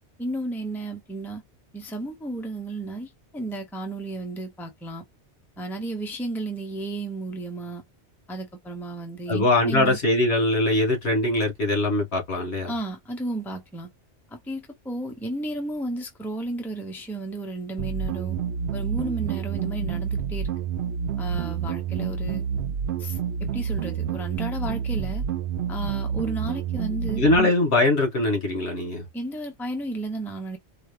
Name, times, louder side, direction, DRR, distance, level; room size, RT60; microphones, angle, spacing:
voice 1, 0.2-1.4 1.7-5.0 5.6-7.8 8.3-10.0 12.7-13.9 14.3-18.4 18.7-20.5 21.2-22.4 23.0-25.2 25.7-27.5 29.1-30.6, right 2 dB, ahead, 0.8 m, -33 dB
voice 2, 9.3-12.7 27.2-29.1, left 2 dB, 70° left, 2.2 m, -22 dB
sound 1, 17.8-27.4, right 7 dB, 70° right, 0.8 m, -28 dB
4.7 x 2.4 x 3.3 m
omnidirectional pair, 1.2 m